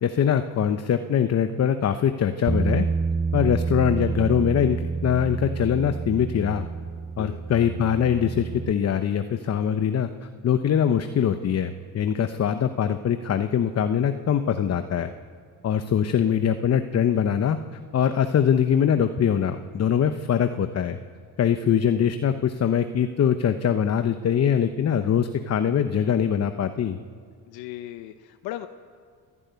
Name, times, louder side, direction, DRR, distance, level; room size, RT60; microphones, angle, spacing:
voice 1, 0.0-2.9 3.3-6.7 7.2-15.1 15.6-17.6 17.9-21.0 21.4-27.0, left 8 dB, 40° left, 9 dB, 0.9 m, -23 dB
Bass guitar, 2.5-8.7, right 4 dB, 10° right, 0.5 m, -28 dB
voice 2, 27.5-28.7, left 14 dB, 85° left, 9 dB, 0.9 m, -37 dB
27.0 x 11.0 x 9.5 m, 2.1 s
cardioid pair, 90°, 37 cm